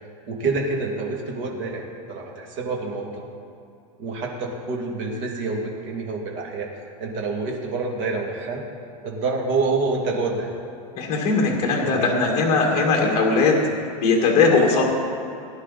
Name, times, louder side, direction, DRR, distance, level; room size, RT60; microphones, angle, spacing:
voice 1, 0.3-3.2 4.0-8.6 9.0-10.5 11.8-12.2 14.7-14.8, right 3 dB, 45° right, 0 dB, 2.4 m, -27 dB
voice 2, 11.0-13.6 14.0-14.9, left 4 dB, 30° left, -1 dB, 2.0 m, -19 dB
18.5 x 10.5 x 4.2 m, 2.6 s
supercardioid pair, 155°, 19 cm